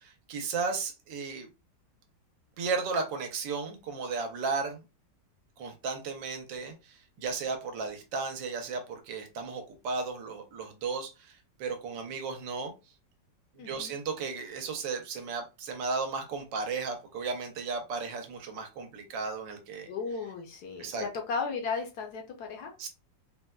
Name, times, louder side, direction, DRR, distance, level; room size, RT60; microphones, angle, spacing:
voice 1, 0.0-1.5 2.6-4.8 5.6-12.7 13.6-19.9 20.8-21.0 22.8-22.9, right 4 dB, 80° right, 5 dB, 1.4 m, -35 dB
voice 2, 13.6-14.0 19.9-22.7, left 5 dB, 70° left, 2 dB, 1.1 m, -35 dB
4.0 x 2.1 x 2.2 m, 0.28 s
omnidirectional pair, 2.0 m